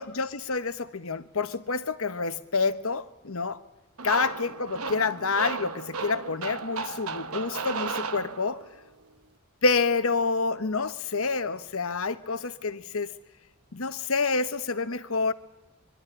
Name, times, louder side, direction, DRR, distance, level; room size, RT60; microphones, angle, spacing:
voice 1, 0.0-3.6 4.0-8.6 9.6-13.1 13.7-15.3, left 4 dB, 65° left, 12 dB, 1.1 m, -28 dB
sound 1, 4.0-8.8, right 4 dB, 75° right, 1.2 m, -34 dB
24.0 x 12.5 x 9.9 m, 1.1 s
head